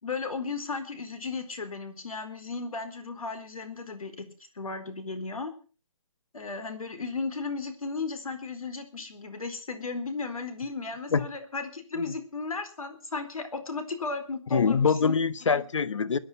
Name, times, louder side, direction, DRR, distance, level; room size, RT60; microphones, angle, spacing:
voice 1, 0.0-4.3 4.5-5.5 6.3-15.1 15.5-15.6, left 4 dB, 80° left, 4.2 m, -35 dB
voice 2, 14.5-16.2, left 5 dB, 60° left, 1.1 m, -24 dB
21.5 x 10.5 x 5.7 m
hypercardioid pair, 170°, 18 cm